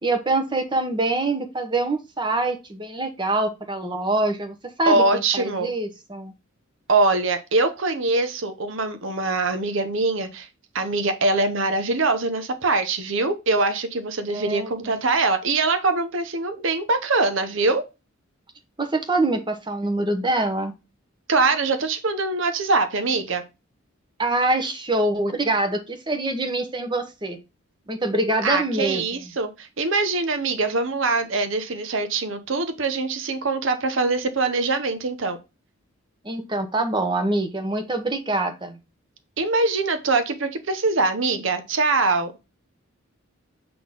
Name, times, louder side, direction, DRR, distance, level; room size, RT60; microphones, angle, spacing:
voice 1, 0.0-6.3 14.3-14.9 18.8-20.7 24.2-27.4 27.9-29.0 36.2-38.8, right 2 dB, 20° right, 1.0 m, -25 dB
voice 2, 4.9-5.7 6.9-10.5 10.7-17.8 21.3-23.4 28.4-35.4 39.4-42.3, right 3 dB, 65° right, 0.8 m, -23 dB
7.7 x 3.8 x 3.7 m
head